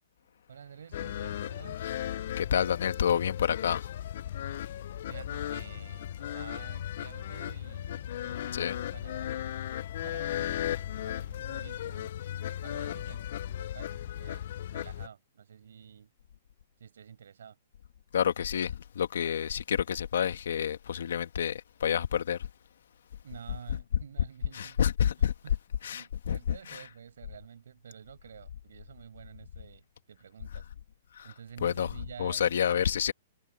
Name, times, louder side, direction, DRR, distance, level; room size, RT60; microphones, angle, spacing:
voice 1, 0.5-1.8 5.1-9.6 10.0-12.1 12.6-16.1 16.8-17.6 23.2-24.8 25.4-25.6 25.9-30.7 31.2-32.9, right 8 dB, 80° right, 6.3 m, -50 dB
sound 1, 0.9-15.1, left 11 dB, 60° left, 0.4 m, -36 dB
voice 2, 2.4-3.9 8.5-8.8 18.1-22.4 24.5-25.3 25.8-26.8 31.2-31.3 31.6-31.9 32.2-33.1, left 8 dB, 75° left, 1.9 m, -29 dB
hypercardioid pair, 145°, 0 cm